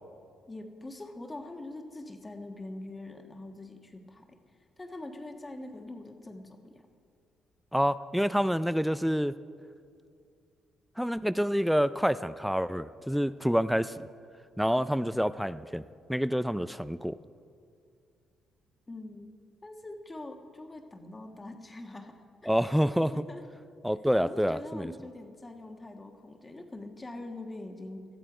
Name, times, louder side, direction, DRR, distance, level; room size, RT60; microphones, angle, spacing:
voice 1, 0.5-4.2 4.8-6.7 18.9-19.3 19.6-22.5 23.1-23.4 24.2-28.0, left 2 dB, 20° left, 4 dB, 1.4 m, -43 dB
voice 2, 7.7-9.3 11.0-13.9 14.6-15.8 16.1-17.2 22.5-23.2 23.8-24.9, equal, ahead, 15 dB, 0.4 m, -27 dB
18.0 x 13.0 x 5.0 m, 2.4 s
cardioid pair, 90°, 0 cm